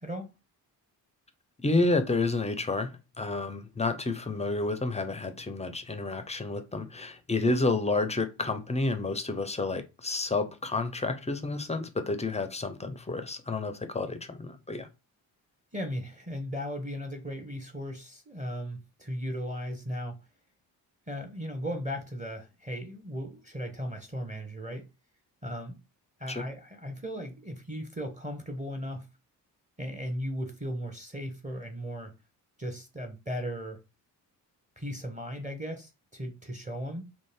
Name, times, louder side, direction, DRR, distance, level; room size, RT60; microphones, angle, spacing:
voice 1, 1.6-14.9 26.3-26.4, left 3 dB, 15° left, 0.4 m, -30 dB
voice 2, 15.7-20.2 21.1-24.9 25.4-25.8 26.2-29.1 29.8-32.1 32.6-33.8 34.8-37.1, equal, 15° right, 0.7 m, -36 dB
2.5 x 2.0 x 3.2 m
hypercardioid pair, 45°, 47 cm